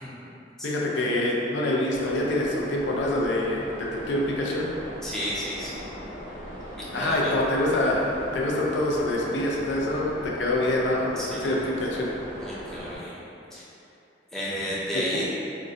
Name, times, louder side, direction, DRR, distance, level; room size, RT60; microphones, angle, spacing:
voice 1, 0.6-4.7 6.9-11.1 11.4-12.1 14.9-15.2, left 1 dB, 85° left, -3 dB, 0.4 m, -25 dB
morning waves, 1.9-13.0, equal, 40° left, 0.9 m, -39 dB
voice 2, 5.0-5.8 7.0-7.3 11.2-11.6 12.4-13.2 13.5-13.6 14.3-15.3, equal, 5° left, -8 dB, 0.4 m, -32 dB
3.8 x 2.1 x 2.5 m, 2.8 s
head